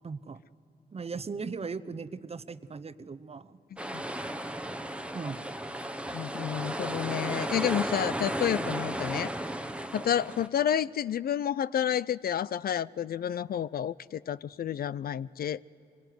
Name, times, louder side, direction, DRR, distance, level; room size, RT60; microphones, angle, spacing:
voice 1, 0.0-0.4 0.9-3.6 5.1-5.4 5.8-5.9, right 5 dB, 35° right, 12 dB, 0.8 m, -38 dB
sound 1, 3.8-10.5, right 1 dB, 5° right, 1.1 m, -34 dB
voice 2, 6.1-9.3 9.9-15.6, left 9 dB, 65° left, 19 dB, 0.5 m, -30 dB
25.0 x 18.5 x 9.4 m, 2.6 s
cardioid pair, 65°, 17 cm